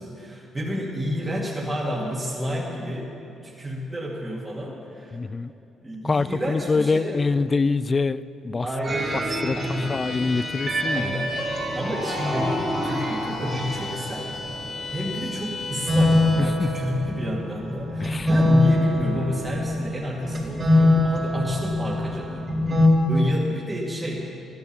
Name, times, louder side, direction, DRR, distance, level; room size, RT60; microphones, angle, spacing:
voice 1, 0.0-3.1 3.4-5.2 5.8-7.2 8.6-10.0 10.3-10.5 10.8-14.3 14.9-22.5 23.1-24.2, equal, 15° right, -5 dB, 2.3 m, -30 dB
voice 2, 5.1-5.5 6.0-8.7 9.4-9.6 9.9-11.2 16.4-16.7 18.0-18.3, left 4 dB, 30° left, 17 dB, 0.4 m, -25 dB
sound 1, 8.8-22.9, left 1 dB, 40° right, 3.8 m, -24 dB
Bowed string instrument, 9.6-16.6, left 4 dB, 55° left, 2.2 m, -36 dB
13.0 x 12.0 x 7.3 m, 2.8 s
cardioid pair, 90°, 0 cm